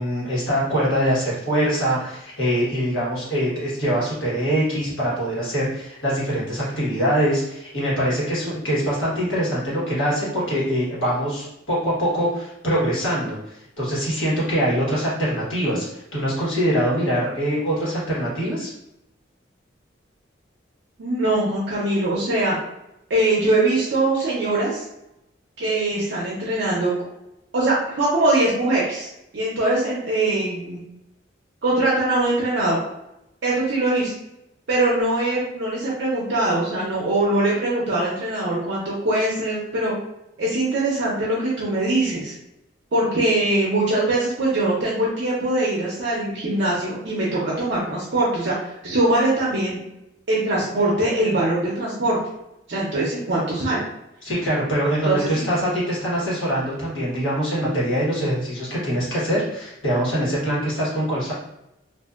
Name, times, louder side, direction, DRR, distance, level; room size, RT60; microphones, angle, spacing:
voice 1, 0.0-13.4 13.8-18.7 54.2-61.3, equal, 85° left, -7 dB, 1.4 m, -23 dB
voice 2, 21.0-22.6 23.1-24.8 25.6-26.9 27.5-29.1 29.3-30.8 31.6-32.8 33.4-34.1 34.7-39.9 40.4-42.3 42.9-49.8 50.3-52.2 52.7-53.9 55.0-55.5, right 2 dB, 60° right, -5 dB, 0.6 m, -22 dB
2.6 x 2.5 x 2.4 m, 0.85 s
head